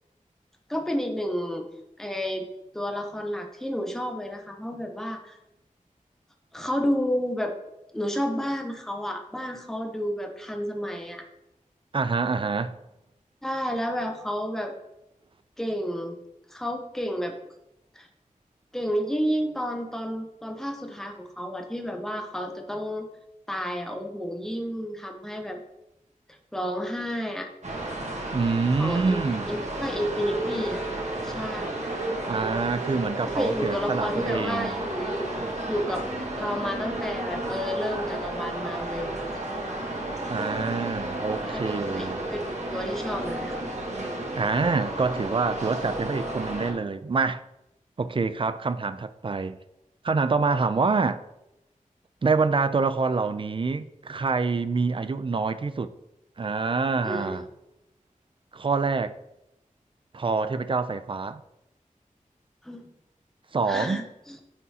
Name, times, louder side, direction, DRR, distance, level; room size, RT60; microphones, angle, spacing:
voice 1, 0.7-1.7 2.0-2.5 2.7-5.4 6.5-7.6 7.9-11.2 13.4-14.7 15.6-16.2 16.5-17.4 17.9-18.1 18.7-23.1 23.5-25.6 26.5-27.5 28.8-30.8 31.2-31.7 33.4-35.3 35.7-36.1 36.4-39.5 41.4-43.6 57.0-57.4 62.6-62.9 63.6-64.4, equal, 5° left, 0.7 m, -31 dB
voice 2, 11.9-12.7 28.3-29.5 32.3-34.8 40.3-42.3 44.4-47.4 48.0-49.6 50.0-51.2 52.2-55.9 56.4-57.4 58.5-59.1 60.1-61.4 63.5-64.0, right 4 dB, 40° right, 0.3 m, -26 dB
sound 1, 27.6-46.7, right 1 dB, 55° right, 1.2 m, -32 dB
9.5 x 3.6 x 2.8 m
wide cardioid pair, 75°, 14 cm